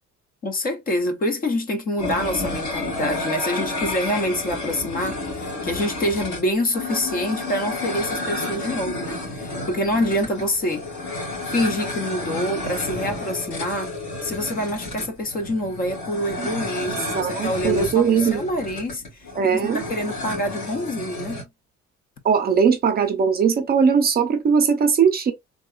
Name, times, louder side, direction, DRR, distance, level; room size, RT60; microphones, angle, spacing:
voice 1, 0.4-10.9 11.5-13.9 14.2-21.4, left 1 dB, 30° left, 0.5 m, -26 dB
sound 1, 2.0-21.4, left 2 dB, 85° left, 2.1 m, -31 dB
voice 2, 16.9-18.4 19.4-19.8 22.2-25.3, right 6 dB, 35° right, 0.5 m, -20 dB
3.6 x 2.3 x 2.3 m
cardioid pair, 175°, 29 cm